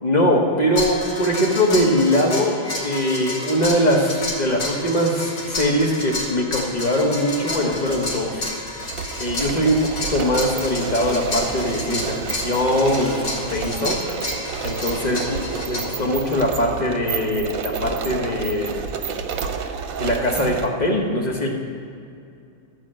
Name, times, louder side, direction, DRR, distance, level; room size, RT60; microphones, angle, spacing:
voice 1, 0.0-8.5 9.2-13.1 13.5-14.0 14.6-15.4 15.7-18.8 20.0-21.5, equal, 35° left, -1 dB, 1.3 m, -21 dB
sound 1, 0.7-15.8, left 2 dB, 60° left, 2.1 m, -31 dB
sound 2, 4.9-5.1 6.2-6.9 7.2-7.3 7.7-20.7, right 6 dB, 80° right, 1.2 m, -30 dB
13.0 x 4.9 x 7.5 m, 2.4 s
omnidirectional pair, 1.4 m